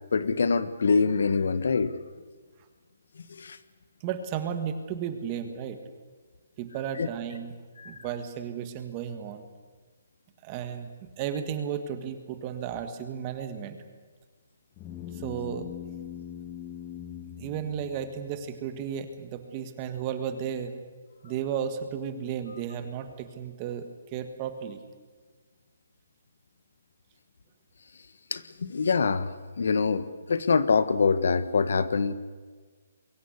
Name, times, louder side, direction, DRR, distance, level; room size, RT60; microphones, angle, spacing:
voice 1, 0.1-2.0 3.3-3.6 7.0-7.1 7.8-7.9 28.3-32.1, left 5 dB, 65° left, 14 dB, 1.5 m, -25 dB
voice 2, 4.0-5.8 6.6-7.5 7.8-9.5 10.4-10.9 11.2-13.8 15.1-15.7 17.4-20.7 21.2-23.9 24.1-24.8, right 8 dB, 20° right, 9 dB, 1.6 m, -34 dB
sound 1, 14.8-18.5, left 9 dB, 15° left, 1.3 m, -41 dB
23.0 x 15.5 x 9.7 m, 1.5 s
hypercardioid pair, 175°, 0 cm